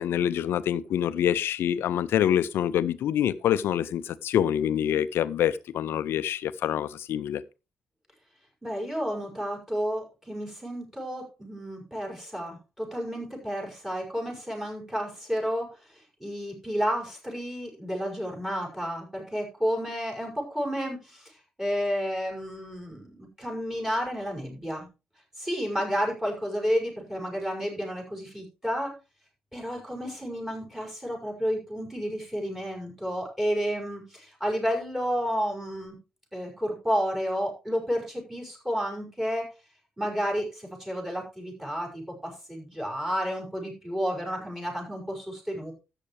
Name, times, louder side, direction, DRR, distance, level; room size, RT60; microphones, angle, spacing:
voice 1, 0.0-7.4, left 10 dB, 60° left, 0.6 m, -26 dB
voice 2, 8.6-15.8 16.2-24.9 25.4-28.9 29.5-36.0 36.3-39.5 40.0-45.7, equal, 5° right, 5.8 m, -31 dB
13.0 x 9.0 x 3.3 m
hypercardioid pair, 45°, 4 cm